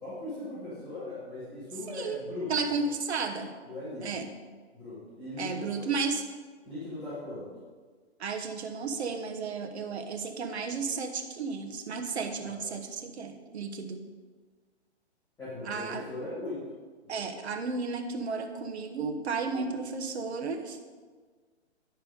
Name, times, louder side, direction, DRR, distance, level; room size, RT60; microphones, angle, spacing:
voice 1, 0.0-2.8 3.6-4.3 4.7-5.7 6.7-7.5 12.4-12.6 15.4-16.6 17.0-17.2, left 2 dB, 5° left, -14 dB, 2.5 m, -39 dB
voice 2, 1.9-2.2 2.5-3.5 4.0-4.3 5.4-6.2 8.2-14.0 15.6-16.1 17.1-20.8, right 4 dB, 70° right, 5 dB, 1.2 m, -33 dB
11.5 x 4.5 x 5.2 m, 1.5 s
hypercardioid pair, 160°, 34 cm